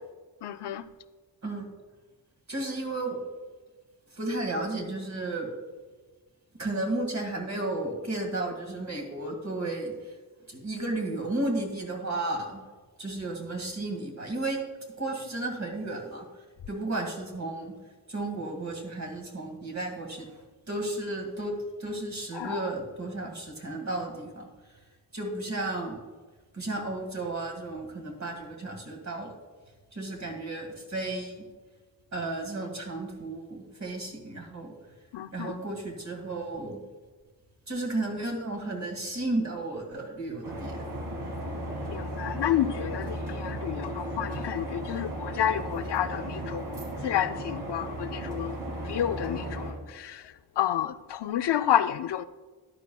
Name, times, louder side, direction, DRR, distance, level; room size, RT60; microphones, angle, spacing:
voice 1, 0.4-0.8 22.3-22.6 35.1-35.6 41.8-46.6 47.0-48.6 48.9-50.2 50.6-52.2, left 10 dB, 75° left, 0.5 m, -30 dB
voice 2, 2.5-3.2 4.1-5.5 6.6-10.1 10.5-12.6 13.0-14.6 15.0-16.3 16.7-17.7 18.1-20.3 20.7-21.5 21.8-24.5 25.1-26.0 26.5-29.3 29.9-31.4 32.1-34.7 35.3-36.8 37.7-40.8, right 2 dB, 40° right, 2.0 m, -33 dB
sound 1, 40.4-49.7, right 1 dB, 65° right, 2.3 m, -35 dB
13.5 x 11.0 x 2.3 m
wide cardioid pair, 145°, 41 cm